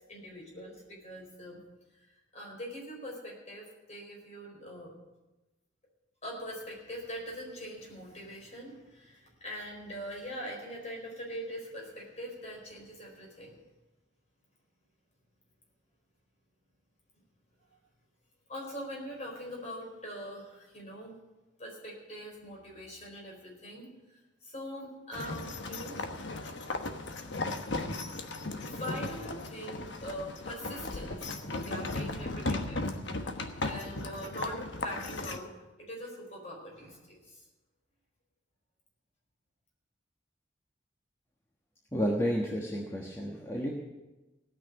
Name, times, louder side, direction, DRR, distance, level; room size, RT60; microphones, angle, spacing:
voice 1, 0.1-1.6 2.3-5.0 6.2-13.6 18.5-21.1 21.6-23.9 24.4-26.0 28.6-33.3 33.6-35.5 35.8-37.4, equal, 35° left, -1 dB, 4.4 m, -43 dB
sound 1, 25.1-35.4, left 2 dB, 70° left, 1.2 m, -36 dB
voice 2, 41.9-43.7, equal, 15° left, -2 dB, 1.3 m, -31 dB
17.0 x 6.3 x 9.3 m, 1.1 s
head